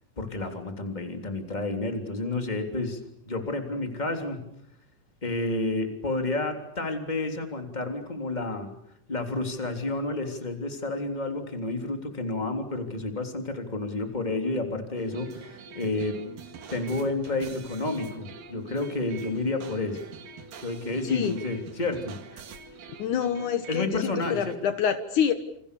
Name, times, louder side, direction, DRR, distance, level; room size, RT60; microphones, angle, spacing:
voice 1, 0.2-3.0 3.3-4.4 5.2-8.7 9.1-16.2 16.7-20.0 20.6-22.2 23.7-24.6, left 2 dB, 15° left, 5 dB, 3.2 m, -30 dB
sound 1, 15.0-24.6, right 6 dB, 90° right, 3.7 m, -45 dB
voice 2, 21.0-21.4 23.0-25.3, left 8 dB, 70° left, 9 dB, 2.8 m, -27 dB
29.0 x 28.0 x 6.9 m, 0.72 s
omnidirectional pair, 3.7 m